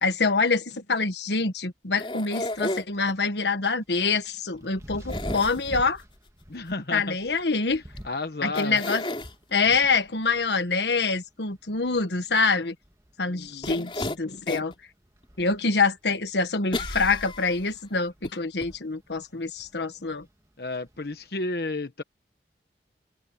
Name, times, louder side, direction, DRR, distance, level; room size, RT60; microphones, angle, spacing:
voice 1, 0.0-6.0 6.9-7.8 8.4-9.0 9.5-12.7 13.2-14.7 15.4-20.3, left 4 dB, 80° left, 1.4 m, -25 dB
sound 1, 2.0-3.1 5.1-6.0 8.0-8.1 8.6-9.3 13.6-14.7 15.2-15.3 16.7-17.7 18.2-18.3 18.6-18.7, left 1 dB, 30° left, 3.9 m, -32 dB
sound 2, 2.5-21.3, equal, 15° right, 1.7 m, -46 dB
voice 2, 6.5-7.2 8.0-8.8 13.3-13.9 20.6-22.0, left 3 dB, 65° left, 1.1 m, -32 dB
head